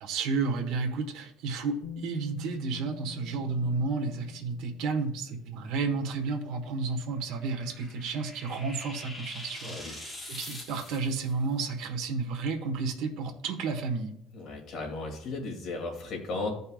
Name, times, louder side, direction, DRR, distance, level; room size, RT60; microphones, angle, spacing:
voice 1, 0.0-14.1, right 4 dB, 75° right, 3 dB, 1.3 m, -32 dB
Bass guitar, 1.8-7.9, left 6 dB, 75° left, 1.1 m, -47 dB
sound 1, 7.2-11.3, left 1 dB, 10° left, 1.5 m, -44 dB
voice 2, 9.6-9.9 14.3-16.5, left 3 dB, 45° left, 0 dB, 2.6 m, -35 dB
15.0 x 5.5 x 2.4 m, 0.80 s
cardioid pair, 165°, 0 cm